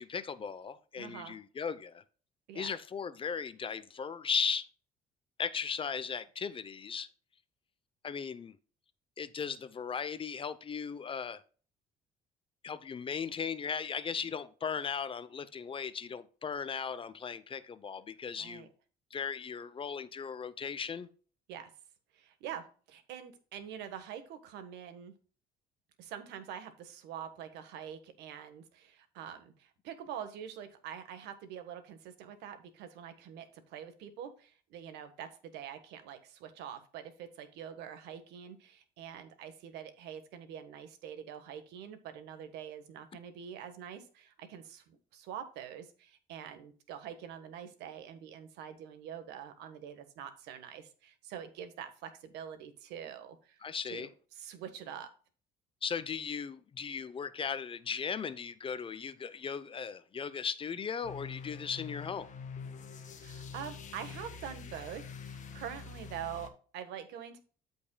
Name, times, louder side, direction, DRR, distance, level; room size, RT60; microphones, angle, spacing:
voice 1, 0.0-2.0 2.5-4.7 5.4-7.1 8.0-8.6 9.2-11.4 12.6-18.7 19.1-21.1 53.6-54.1 55.8-62.3, left 6 dB, 30° left, 0.7 m, -37 dB
voice 2, 1.0-1.3 2.5-2.7 18.4-18.7 21.5-21.7 22.1-25.1 26.0-53.6 53.9-55.1 63.2-67.4, right 9 dB, 90° right, 1.4 m, -45 dB
sound 1, 61.0-66.5, left 5 dB, 45° left, 1.4 m, -45 dB
13.5 x 5.3 x 2.3 m
cardioid pair, 110°, 17 cm